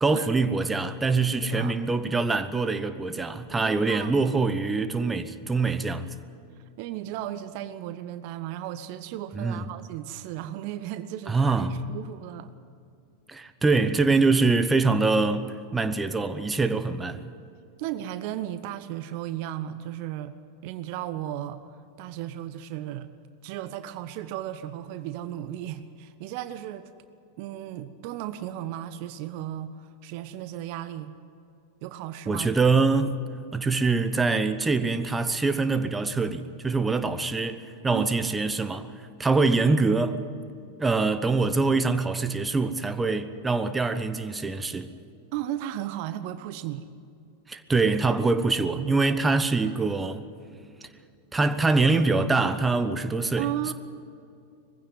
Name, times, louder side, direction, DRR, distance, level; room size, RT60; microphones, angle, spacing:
voice 1, 0.0-6.1 9.3-9.6 11.3-11.8 13.3-17.3 32.3-33.2 33.5-40.2 40.8-44.9 47.5-50.3 50.8-50.9 51.3-53.7, right 3 dB, 10° right, 1.0 m, -24 dB
voice 2, 1.3-1.8 3.5-4.3 6.8-12.5 17.8-20.3 20.6-21.6 22.0-23.1 23.4-26.9 27.4-31.1 31.8-32.5 37.9-38.3 45.3-46.9 53.4-53.7, right 12 dB, 45° right, 0.8 m, -35 dB
21.0 x 15.5 x 9.5 m
figure-of-eight pair, 90°, 0 cm